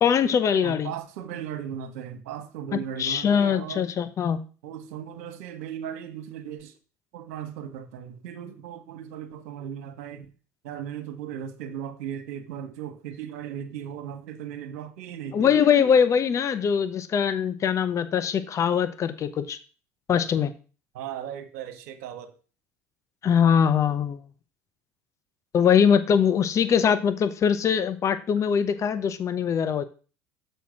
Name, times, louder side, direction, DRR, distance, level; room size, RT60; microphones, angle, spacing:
voice 1, 0.0-0.9 2.7-4.4 15.3-19.6 20.1-20.5 23.2-24.2 25.5-29.8, left 7 dB, 40° left, 0.8 m, -22 dB
voice 2, 0.6-3.9 4.6-6.7 7.1-10.3 10.6-15.5 20.9-22.4, right 9 dB, 75° right, 1.1 m, -37 dB
6.8 x 4.5 x 6.2 m
hypercardioid pair, 70°, 8 cm